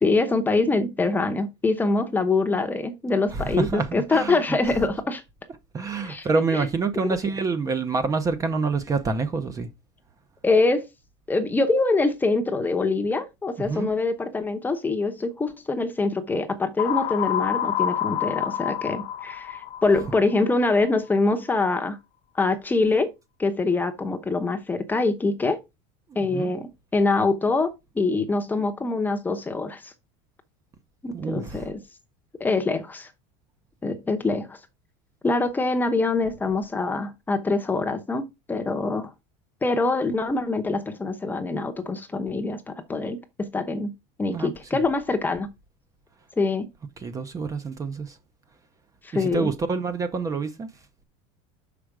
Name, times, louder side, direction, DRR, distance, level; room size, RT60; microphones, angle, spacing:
voice 1, 0.0-5.2 6.0-6.3 6.5-6.7 10.4-10.9 11.3-22.0 22.4-23.1 23.4-25.6 26.1-29.9 31.0-31.8 32.4-33.1 33.8-34.6 35.2-39.1 39.6-43.9 44.2-45.5 46.4-46.7 49.0-49.5, left 3 dB, 10° left, 0.8 m, -24 dB
voice 2, 3.3-4.4 5.7-9.7 13.6-13.9 26.1-26.5 31.1-31.7 44.2-44.8 47.0-48.2 49.1-50.7, right 4 dB, 20° right, 0.7 m, -27 dB
sound 1, 16.8-20.6, left 11 dB, 40° left, 0.5 m, -28 dB
6.3 x 5.1 x 4.6 m
cardioid pair, 155°, 16 cm